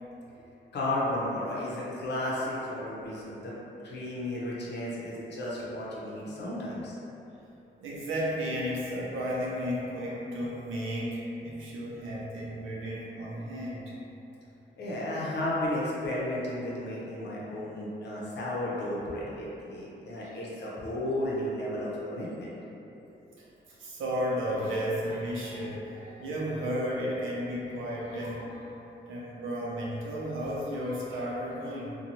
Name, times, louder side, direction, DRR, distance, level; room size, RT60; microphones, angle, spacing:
voice 1, 0.7-3.5 3.8-6.9 13.7-13.8 14.8-22.5, left 1 dB, 60° left, -6 dB, 0.7 m, -33 dB
voice 2, 7.8-13.9 20.2-20.3 23.4-23.5 23.8-28.7 29.1-32.0, equal, 90° right, -5 dB, 0.5 m, -33 dB
2.9 x 2.2 x 2.6 m, 3.0 s
cardioid pair, 100°, 20 cm